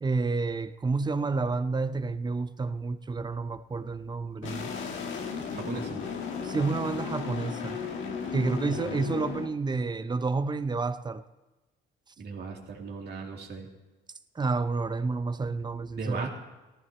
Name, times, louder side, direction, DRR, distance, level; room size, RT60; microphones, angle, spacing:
voice 1, 0.0-4.7 6.4-7.8 8.3-11.2 14.4-16.3, right 3 dB, 20° right, 0.7 m, -29 dB
sound 1, 4.4-9.5, left 6 dB, 75° left, 1.7 m, -35 dB
voice 2, 5.5-6.0 8.7-8.9 12.2-13.7 16.0-16.3, right 4 dB, 55° right, 2.7 m, -37 dB
18.5 x 14.5 x 3.1 m
cardioid pair, 90°, 20 cm